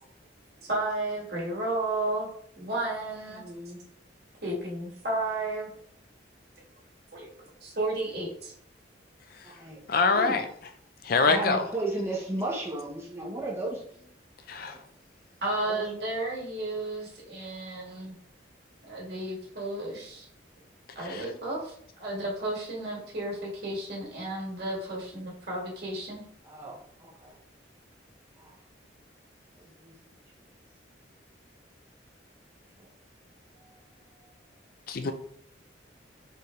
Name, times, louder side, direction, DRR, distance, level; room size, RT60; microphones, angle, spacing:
voice 1, 0.6-2.3 2.6-3.4 4.4-5.7 7.1-7.3 7.6-8.5 15.4-18.1 18.9-20.2 20.9-26.2, right 2 dB, 55° right, 1.9 m, -33 dB
voice 2, 3.4-3.8 9.4-9.8 10.1-10.4 11.2-14.1 14.7-14.8 15.7-15.9 26.4-27.4 28.4-28.5 29.6-29.9 32.8-32.9 33.6-33.7, right 2 dB, 15° right, 0.7 m, -35 dB
voice 3, 9.9-10.4 11.0-11.6 14.5-14.8 21.1-21.2 34.9-35.1, left 4 dB, 50° left, 0.4 m, -24 dB
4.5 x 3.5 x 3.2 m
head